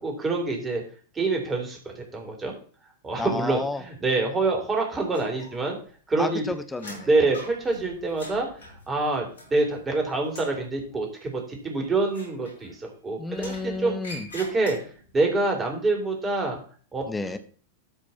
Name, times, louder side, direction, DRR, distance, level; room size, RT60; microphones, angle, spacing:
voice 1, 0.0-0.8 1.2-2.5 3.0-5.8 6.1-6.5 7.1-8.5 8.9-14.0 14.3-14.8 15.1-16.6 16.9-17.1, right 3 dB, 20° right, 1 dB, 3.4 m, -26 dB
voice 2, 3.2-3.8 6.2-7.1 13.2-14.3 17.1-17.4, left 3 dB, 10° left, 10 dB, 1.0 m, -31 dB
sound 1, 5.1-5.9 6.2-9.9 10.2-10.6 12.1-12.9 13.3-15.1, left 1 dB, 70° left, 5.3 m, -44 dB
13.0 x 4.5 x 4.4 m, 0.43 s
figure-of-eight pair, 90°, 0 cm